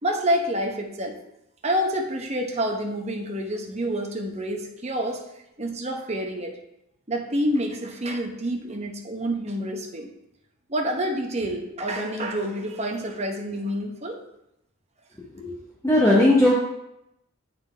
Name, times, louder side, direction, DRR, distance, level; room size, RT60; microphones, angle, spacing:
voice 1, 0.0-1.2 1.6-5.2 5.6-6.6 7.1-10.1 10.7-14.2, equal, 30° right, 1 dB, 0.8 m, -28 dB
voice 2, 15.8-16.6, left 1 dB, 15° left, -6 dB, 0.8 m, -18 dB
9.4 x 3.9 x 3.3 m, 0.84 s
head